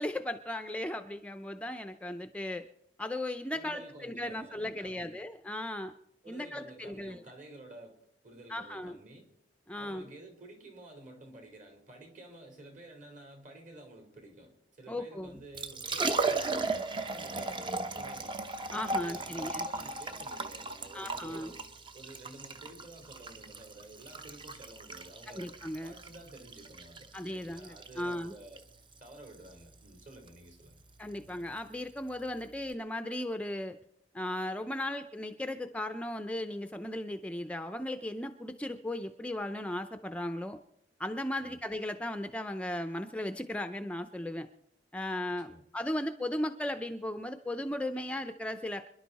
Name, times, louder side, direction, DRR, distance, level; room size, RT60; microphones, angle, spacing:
voice 1, 0.0-2.7 3.0-5.9 6.3-7.2 8.5-9.0 9.7-10.1 14.9-15.4 18.7-19.7 20.9-21.5 25.4-25.9 27.1-28.4 31.0-33.8 34.1-40.6 41.0-44.5 44.9-48.9, left 1 dB, 5° left, 8 dB, 0.5 m, -36 dB
voice 2, 3.5-5.2 6.2-9.3 9.8-18.4 18.7-21.7 21.9-28.6 29.0-30.8 41.4-41.6 45.5-45.6, right 1 dB, 45° right, 2 dB, 3.9 m, -51 dB
Liquid, 15.4-32.7, right 3 dB, 30° right, 0.8 m, -37 dB
26.0 x 11.0 x 4.1 m, 0.74 s
head